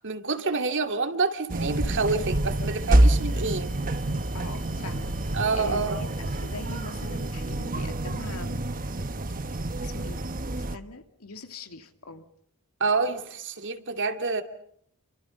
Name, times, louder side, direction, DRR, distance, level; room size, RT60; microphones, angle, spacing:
voice 1, 0.0-3.7 5.3-6.0 12.8-14.4, right 4 dB, 55° right, 2.8 m, -27 dB
sound 1, 1.4-8.0, left 2 dB, 35° left, 5.6 m, -55 dB
sound 2, 1.5-10.8, right 1 dB, 40° right, 1.3 m, -27 dB
voice 2, 4.3-8.7 9.3-10.3 10.6-12.3, left 3 dB, 70° left, 2.7 m, -42 dB
30.0 x 25.0 x 5.5 m
head